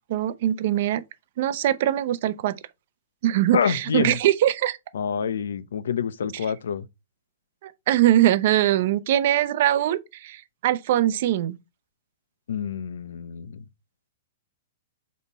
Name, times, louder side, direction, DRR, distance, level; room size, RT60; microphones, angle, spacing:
voice 1, 0.1-1.0 1.4-2.5 3.2-4.8 7.6-11.6, right 12 dB, 45° right, 0.6 m, -22 dB
voice 2, 3.5-4.2 4.9-6.8 12.5-13.6, left 7 dB, 85° left, 0.7 m, -27 dB
5.4 x 4.3 x 4.0 m
hypercardioid pair, 170°, 0 cm